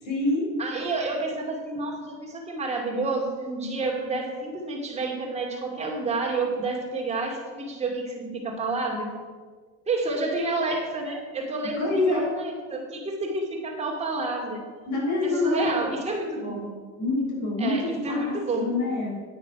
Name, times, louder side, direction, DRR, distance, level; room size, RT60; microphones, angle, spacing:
voice 1, 0.0-0.6 11.7-12.4 14.9-15.9 16.4-16.5 17.0-19.2, left 2 dB, 55° left, -1 dB, 4.1 m, -26 dB
voice 2, 0.6-9.2 9.9-14.7 15.2-16.7 17.6-18.7, right 2 dB, 20° right, -1 dB, 2.2 m, -29 dB
9.7 x 9.5 x 5.8 m, 1.5 s
cardioid pair, 140°, 36 cm